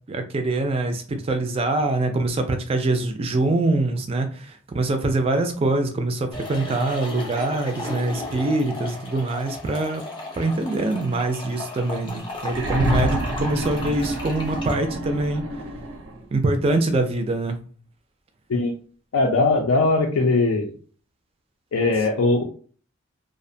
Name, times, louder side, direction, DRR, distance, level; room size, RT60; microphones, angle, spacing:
voice 1, 0.1-10.0 10.4-15.4 16.3-17.6, right 2 dB, 30° right, 7 dB, 0.3 m, -24 dB
sound 1, 6.3-14.8, left 2 dB, 25° left, 0.6 m, -35 dB
sound 2, 12.5-16.3 17.5-17.6, right 1 dB, 80° right, 0.5 m, -27 dB
voice 2, 19.1-20.7 21.7-22.4, left 3 dB, 90° left, 1 dB, 0.4 m, -20 dB
2.4 x 2.1 x 2.6 m, 0.42 s
head